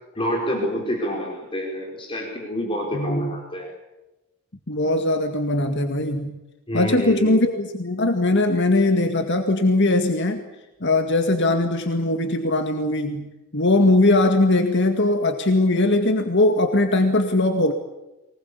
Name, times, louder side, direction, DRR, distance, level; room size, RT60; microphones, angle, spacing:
voice 1, 0.1-3.7 6.7-7.3, equal, 25° left, 0 dB, 4.5 m, -27 dB
voice 2, 2.9-3.4 4.7-6.4 6.7-10.4 10.8-13.3 13.5-17.7, left 2 dB, 60° left, 5 dB, 2.1 m, -20 dB
24.0 x 20.5 x 8.5 m, 1.0 s
head